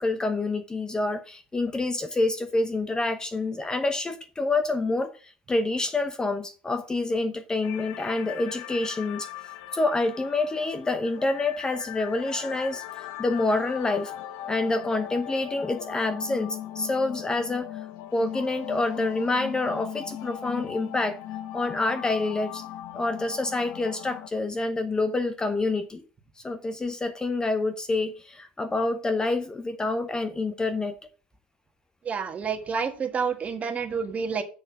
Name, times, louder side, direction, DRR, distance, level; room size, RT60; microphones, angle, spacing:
voice 1, 0.0-9.3 9.7-14.1 14.5-17.7 18.1-21.2 21.5-22.6 22.9-26.0 26.4-31.0, left 2 dB, 15° left, 0.9 m, -27 dB
sound 1, 7.6-24.3, left 12 dB, 60° left, 1.0 m, -39 dB
voice 2, 32.0-34.4, right 6 dB, 30° right, 1.6 m, -29 dB
6.9 x 6.4 x 6.0 m
hypercardioid pair, 100°, 5 cm